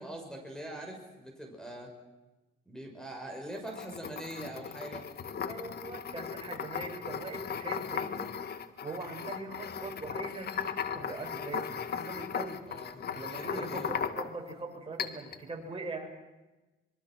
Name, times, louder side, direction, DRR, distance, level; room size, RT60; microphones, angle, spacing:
voice 1, 0.0-1.9 2.7-5.0 12.7-14.1, right 1 dB, 5° left, 3 dB, 6.1 m, -43 dB
sound 1, 3.5-14.5 15.0-15.4, left 7 dB, 55° left, 1.7 m, -37 dB
voice 2, 5.5-8.3 8.8-12.6 13.1-16.1, right 3 dB, 30° right, 2 dB, 6.2 m, -41 dB
25.5 x 23.0 x 6.3 m, 1.1 s
cardioid pair, 90°, 20 cm